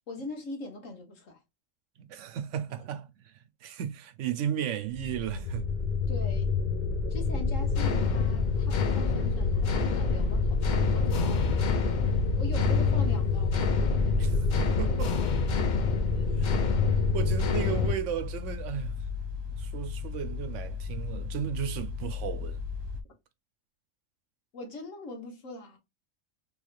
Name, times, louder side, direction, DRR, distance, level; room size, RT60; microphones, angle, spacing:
voice 1, 0.0-1.4 6.1-6.5 7.1-11.7 12.4-13.6 16.1-16.6 24.5-25.8, left 2 dB, 75° left, 1.5 m, -42 dB
voice 2, 2.0-5.7 14.2-15.2 16.4-16.5 17.1-19.1 19.6-22.6, right 9 dB, 75° right, 0.9 m, -35 dB
sound 1, 4.9-17.9, left 4 dB, 55° left, 0.5 m, -26 dB
sound 2, 7.5-23.0, left 5 dB, 25° right, 0.6 m, -36 dB
3.4 x 3.3 x 2.4 m
omnidirectional pair, 1.3 m